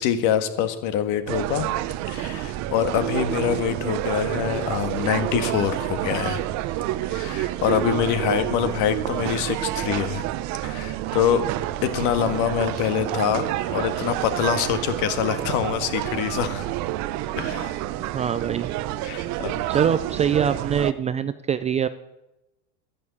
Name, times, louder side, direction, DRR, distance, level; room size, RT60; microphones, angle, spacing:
voice 1, 0.0-1.7 2.1-6.4 7.1-10.3 10.6-11.4 11.8-16.7 17.4-17.8 19.0-19.8, left 9 dB, 55° left, 10 dB, 1.7 m, -25 dB
sound 1, 1.3-20.9, right 14 dB, 50° right, 0.9 m, -28 dB
voice 2, 18.1-18.7 19.7-21.9, right 8 dB, 20° right, 13 dB, 0.4 m, -23 dB
11.0 x 10.5 x 8.5 m, 0.97 s
supercardioid pair, 120°, 36 cm